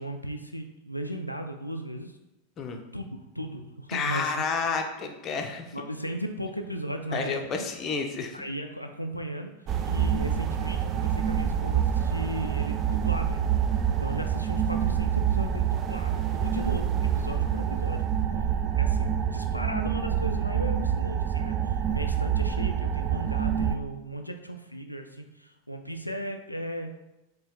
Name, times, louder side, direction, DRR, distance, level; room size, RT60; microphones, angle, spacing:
voice 1, 0.0-2.2 2.9-3.1 3.3-4.3 5.7-7.7 8.3-9.5 9.8-13.5 13.9-18.1 18.4-18.5 18.7-26.9, right 1 dB, 90° left, 4 dB, 0.3 m, -36 dB
voice 2, 3.9-5.7 7.1-8.4, left 5 dB, 30° left, 4 dB, 0.5 m, -30 dB
sound 1, 9.7-23.8, right 8 dB, 30° right, 0.3 m, -27 dB
4.2 x 2.8 x 3.6 m, 0.94 s
figure-of-eight pair, 90°, 0 cm